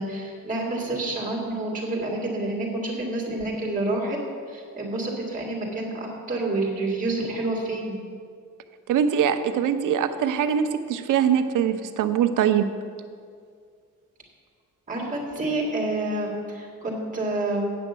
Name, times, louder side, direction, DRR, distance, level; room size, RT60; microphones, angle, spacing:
voice 1, 0.0-4.2 4.5-8.0 14.9-17.7, right 2 dB, 25° right, -2 dB, 2.1 m, -28 dB
voice 2, 8.9-12.7, right 8 dB, 85° right, 9 dB, 0.7 m, -22 dB
8.6 x 6.2 x 8.0 m, 2.1 s
wide cardioid pair, 170°, 31 cm